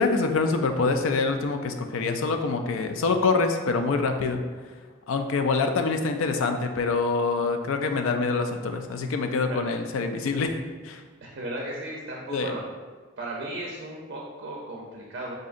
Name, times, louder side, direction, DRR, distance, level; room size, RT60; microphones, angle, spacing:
voice 1, 0.0-4.4 5.1-10.5 10.8-11.0 12.3-12.5, left 4 dB, 80° left, 6 dB, 0.4 m, -25 dB
voice 2, 11.2-12.6 13.2-15.4, right 1 dB, 55° right, -3 dB, 0.5 m, -36 dB
4.9 x 2.6 x 2.4 m, 1.4 s
head